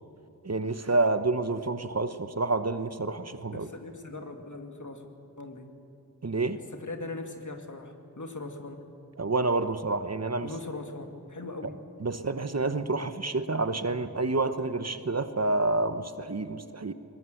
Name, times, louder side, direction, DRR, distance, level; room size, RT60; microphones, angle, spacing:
voice 1, 0.4-3.7 6.2-6.6 9.2-10.5 12.0-16.9, right 3 dB, 45° right, 10 dB, 1.0 m, -28 dB
voice 2, 3.5-5.1 5.4-5.7 6.7-8.9 10.4-11.7, left 2 dB, 55° left, 4 dB, 2.3 m, -40 dB
23.0 x 20.0 x 7.9 m, 2.8 s
wide cardioid pair, 65°, 36 cm